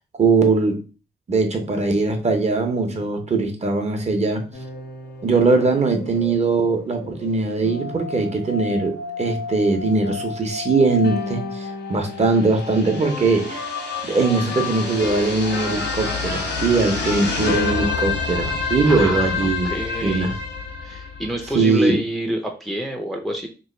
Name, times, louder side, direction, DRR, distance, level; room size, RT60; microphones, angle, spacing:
voice 1, 0.2-0.8 1.3-4.5 5.2-13.6 14.0-19.7 20.0-20.4 21.5-22.0, right 3 dB, 40° right, 5 dB, 0.8 m, -20 dB
sound 1, 4.5-21.6, left 4 dB, 80° left, 1.4 m, -29 dB
voice 2, 18.9-20.3 20.8-23.5, right 1 dB, ahead, 1 dB, 0.5 m, -28 dB
3.1 x 3.0 x 4.2 m, 0.33 s
wide cardioid pair, 150°, 18 cm